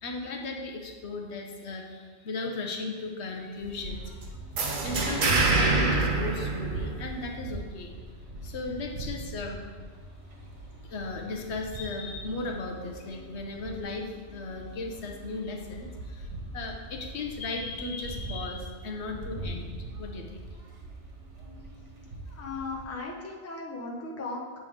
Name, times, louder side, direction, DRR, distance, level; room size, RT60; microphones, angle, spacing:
voice 1, 0.0-4.4 4.8-8.0 8.4-9.6 10.8-20.5, left 3 dB, 70° left, 2 dB, 1.0 m, -36 dB
sound 1, 3.6-22.9, right 2 dB, 80° right, 1.5 m, -42 dB
sound 2, 4.6-7.3, right 3 dB, 50° right, 0.8 m, -25 dB
voice 2, 22.3-24.4, left 3 dB, 15° left, -1 dB, 0.6 m, -37 dB
7.4 x 3.5 x 4.9 m, 1.5 s
omnidirectional pair, 1.2 m